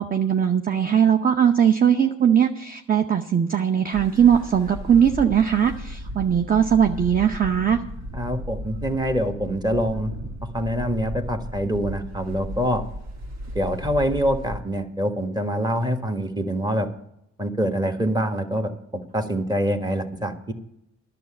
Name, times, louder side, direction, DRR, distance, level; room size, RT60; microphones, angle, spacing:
voice 1, 0.0-7.8, right 8 dB, 30° right, 6 dB, 0.8 m, -20 dB
sound 1, 3.9-14.6, equal, 60° right, 2.1 m, -35 dB
voice 2, 8.1-10.1 10.5-12.8 13.5-16.9 17.4-20.5, equal, 15° right, 5 dB, 1.5 m, -25 dB
11.0 x 6.8 x 8.6 m, 0.79 s
cardioid pair, 90°, 30 cm